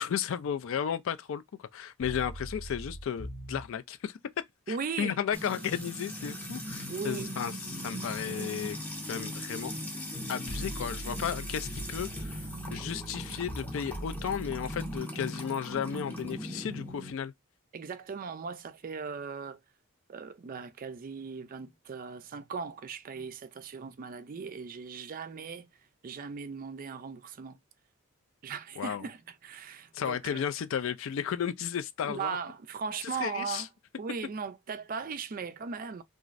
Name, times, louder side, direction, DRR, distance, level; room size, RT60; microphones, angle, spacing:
voice 1, 0.0-4.2 4.7-8.8 9.1-9.7 10.3-17.3 28.8-29.0 29.9-32.4 33.0-33.7, left 8 dB, 60° left, 0.3 m, -34 dB
sound 1, 2.0-3.7 10.5-15.0, right 1 dB, 75° left, 1.4 m, -41 dB
voice 2, 4.7-5.2 6.9-7.3 17.7-19.6 20.1-25.7 26.0-27.6 28.4-30.4 32.0-33.7 34.0-36.0, right 5 dB, 40° right, 0.3 m, -38 dB
Music / Water tap faucet / Trickle dribble, 5.3-17.1, equal, 10° left, 0.7 m, -39 dB
3.0 x 2.4 x 2.5 m
head